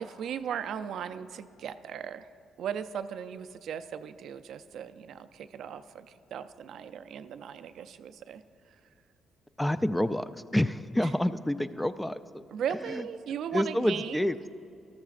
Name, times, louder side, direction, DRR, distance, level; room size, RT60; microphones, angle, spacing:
voice 1, 0.0-2.3 2.6-8.4 11.0-11.1 12.5-14.3, right 8 dB, 70° right, 11 dB, 0.4 m, -37 dB
voice 2, 9.6-12.4 12.9-13.0 13.5-14.4, left 1 dB, 10° left, 12 dB, 0.3 m, -28 dB
14.0 x 13.5 x 2.5 m, 2.7 s
cardioid pair, 90°, 0 cm